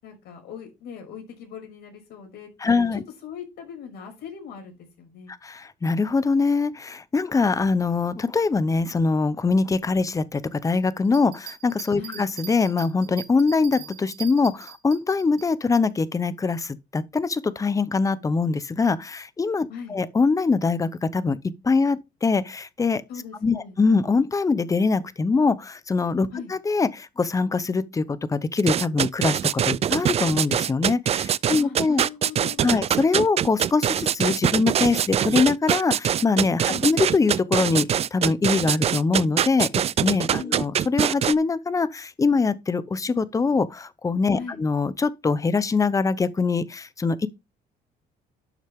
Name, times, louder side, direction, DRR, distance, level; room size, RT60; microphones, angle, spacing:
voice 1, 0.0-5.3 11.9-12.3 19.7-20.0 23.1-23.8 26.3-26.5 31.4-32.8 36.7-36.9 40.4-40.6 44.3-44.6, left 7 dB, 75° left, 6.0 m, -40 dB
voice 2, 2.6-3.0 5.3-21.4 21.6-23.0 23.4-32.0 32.6-39.7 40.0-47.3, left 4 dB, 20° left, 0.8 m, -23 dB
sound 1, 11.0-15.5, right 12 dB, 65° right, 3.0 m, -41 dB
sound 2, 28.6-41.3, right 9 dB, 40° right, 0.4 m, -23 dB
11.5 x 6.4 x 3.6 m
cardioid pair, 110°, 17 cm